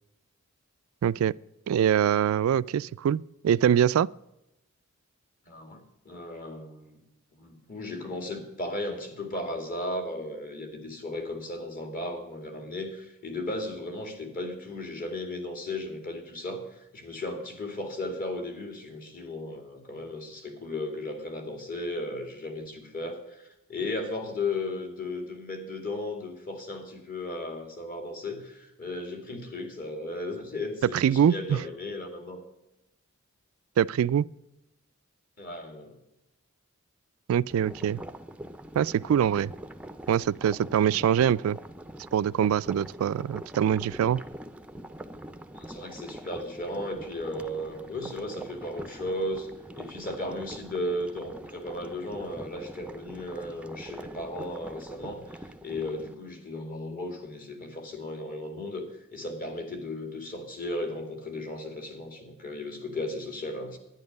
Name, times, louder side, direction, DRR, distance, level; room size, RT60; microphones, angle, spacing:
voice 1, 1.0-1.3 1.7-4.1 30.9-31.6 33.8-34.3 37.3-38.0 38.8-39.5 40.1-41.6 42.1-44.2, right 9 dB, 90° right, 0.3 m, -24 dB
voice 2, 5.5-7.0 7.4-32.4 35.4-35.9 45.5-49.5 49.8-58.9 59.1-63.8, left 1 dB, 45° left, 2.3 m, -35 dB
sound 1, 37.5-56.1, right 1 dB, 5° right, 0.5 m, -44 dB
11.0 x 10.0 x 5.3 m
head